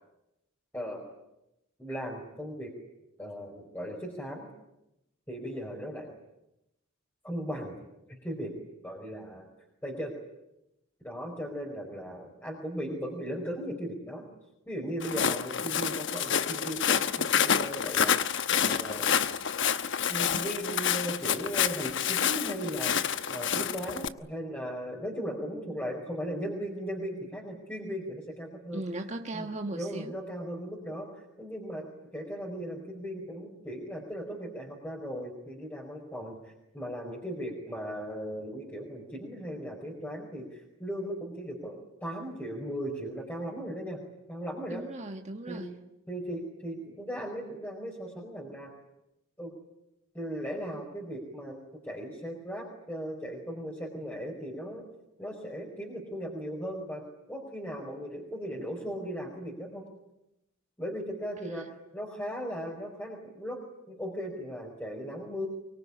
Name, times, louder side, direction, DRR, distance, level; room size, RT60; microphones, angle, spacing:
voice 1, 0.7-1.0 1.8-2.7 3.2-4.5 5.3-6.1 7.2-7.8 8.1-8.5 8.8-9.5 9.8-10.1 11.0-14.3 14.7-18.1 18.6-19.1 20.1-28.8 29.3-31.1 31.4-31.8 32.1-44.0 44.3-44.8 45.5-45.6 46.1-48.7 49.4-49.5 50.1-54.9 55.2-57.0 57.3-59.9 60.8-61.7 61.9-63.6 63.9-65.5, equal, 10° left, -1 dB, 5.0 m, -37 dB
Walk footsteps, 15.0-24.1, left 8 dB, 60° left, 1.0 m, -28 dB
voice 2, 28.7-30.1 44.7-45.7 61.5-61.7, right 2 dB, 35° right, 4 dB, 1.4 m, -37 dB
24.0 x 23.5 x 10.0 m, 0.89 s
head